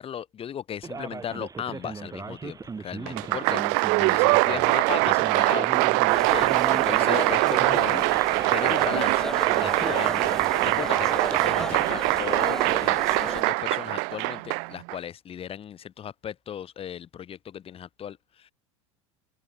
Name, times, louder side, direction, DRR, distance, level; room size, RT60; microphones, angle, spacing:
voice 1, 0.0-5.8 6.2-9.3 9.6-10.3 10.6-18.5, left 9 dB, 35° left, 4.5 m, -36 dB
Male speech man speaking, 0.8-12.8, right 5 dB, 20° right, 6.0 m, -39 dB
Applause, 3.1-15.0, right 39 dB, 55° right, 0.5 m, -23 dB
sound 1, 6.1-13.4, left 1 dB, 5° left, 2.3 m, -35 dB
open air
hypercardioid pair, 75°, 16 cm